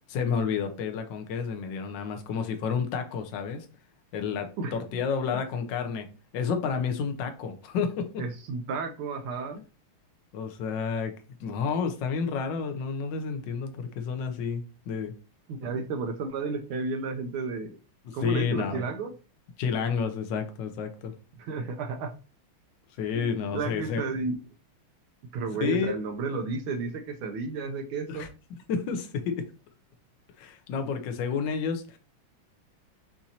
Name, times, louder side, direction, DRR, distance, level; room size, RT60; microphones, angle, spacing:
voice 1, 0.1-3.6 4.1-6.1 6.3-8.2 10.3-11.1 11.4-15.1 18.0-18.8 19.6-21.1 23.0-24.0 25.6-25.9 28.1-28.3 28.7-29.4 30.4-32.0, left 6 dB, 65° left, 1.3 m, -30 dB
voice 2, 8.2-9.6 15.5-17.8 18.1-19.1 21.4-22.1 23.1-24.4 25.3-28.3, right 4 dB, 80° right, 1.5 m, -32 dB
7.2 x 2.7 x 2.8 m
omnidirectional pair, 2.4 m